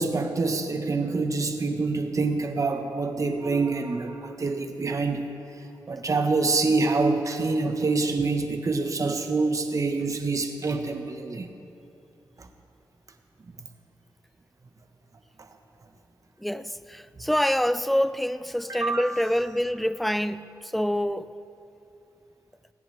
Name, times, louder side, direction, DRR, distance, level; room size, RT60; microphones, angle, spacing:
voice 1, 0.0-5.2 5.9-11.5 12.4-12.5 18.7-19.0, right 3 dB, 45° right, 1.2 m, -26 dB
voice 2, 16.4-21.3, equal, ahead, 0.5 m, -26 dB
20.0 x 15.5 x 3.4 m
cardioid pair, 55°, 8 cm